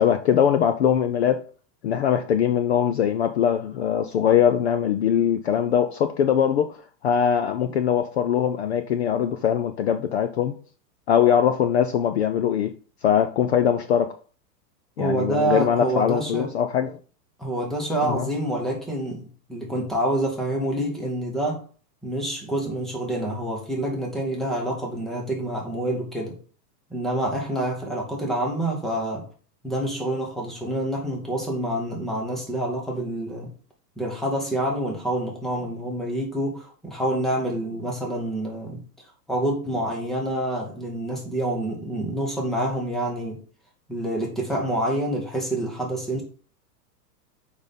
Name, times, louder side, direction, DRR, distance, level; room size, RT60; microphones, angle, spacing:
voice 1, 0.0-1.4 1.8-6.8 7.0-10.5 11.1-12.7 13.0-14.1 15.0-16.9 18.0-18.3, left 8 dB, 45° left, 0.5 m, -21 dB
voice 2, 15.0-16.5 17.4-21.6 22.0-26.4 26.9-29.3 29.6-33.5 34.0-38.8 39.3-43.4 43.9-46.2, right 1 dB, ahead, 0.8 m, -27 dB
6.3 x 5.2 x 5.3 m
supercardioid pair, 170°, 50 cm